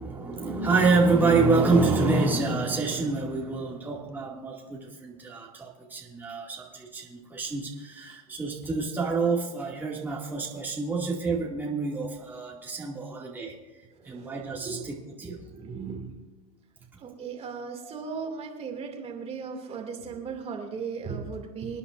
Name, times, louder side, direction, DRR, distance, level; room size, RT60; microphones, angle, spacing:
voice 1, 0.0-13.5 14.0-14.9 15.2-15.4 17.8-17.9, right 3 dB, 10° right, -3 dB, 2.2 m, -27 dB
voice 2, 14.0-14.3 14.6-14.9 15.5-16.1 17.0-21.8, right 5 dB, 30° right, 2 dB, 2.4 m, -37 dB
26.5 x 9.8 x 2.6 m, 1.1 s
hypercardioid pair, 100°, 20 cm